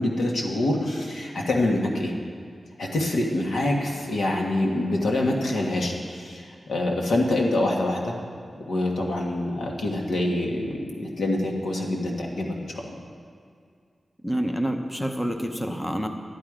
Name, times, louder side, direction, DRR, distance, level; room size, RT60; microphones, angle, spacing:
voice 1, 0.0-2.1 2.8-8.1 8.6-12.9, left 1 dB, 85° left, 0 dB, 1.7 m, -26 dB
voice 2, 14.2-16.1, equal, 5° left, 4 dB, 0.7 m, -27 dB
11.5 x 11.0 x 5.0 m, 2.2 s
wide cardioid pair, 140°, 0 cm